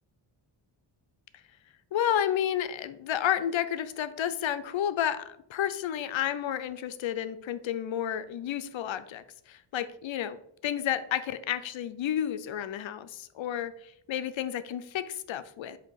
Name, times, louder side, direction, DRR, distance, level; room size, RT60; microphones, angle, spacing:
voice 1, 1.9-10.4 10.6-15.8, left 10 dB, 70° left, 12 dB, 0.6 m, -31 dB
7.6 x 2.9 x 4.6 m, 0.75 s
wide cardioid pair, 110°, 48 cm